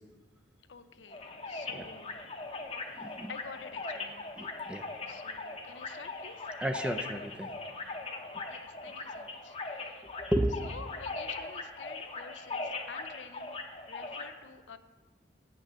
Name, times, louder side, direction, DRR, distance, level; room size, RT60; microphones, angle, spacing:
voice 1, 0.7-2.2 3.3-4.2 5.1-6.5 8.5-10.0 10.6-13.6 13.9-14.8, left 5 dB, 85° left, 10 dB, 0.6 m, -49 dB
sound 1, 1.1-14.2, left 3 dB, 35° left, 0.9 m, -40 dB
voice 2, 3.0-3.3 4.4-4.9 6.6-7.5 10.3-10.5, right 1 dB, 5° right, 6 dB, 0.4 m, -32 dB
8.8 x 5.9 x 6.8 m, 1.3 s
head